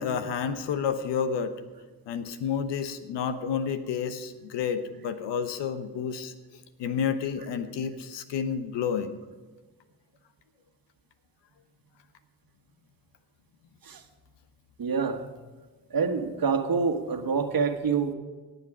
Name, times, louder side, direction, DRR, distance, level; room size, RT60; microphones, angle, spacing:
voice 1, 0.0-1.6 2.1-6.3 6.8-9.1, left 7 dB, 80° left, 10 dB, 1.0 m, -30 dB
voice 2, 14.8-15.3 15.9-18.1, right 5 dB, 55° right, 6 dB, 1.6 m, -26 dB
17.5 x 8.1 x 5.0 m, 1.3 s
supercardioid pair, 40°, 42 cm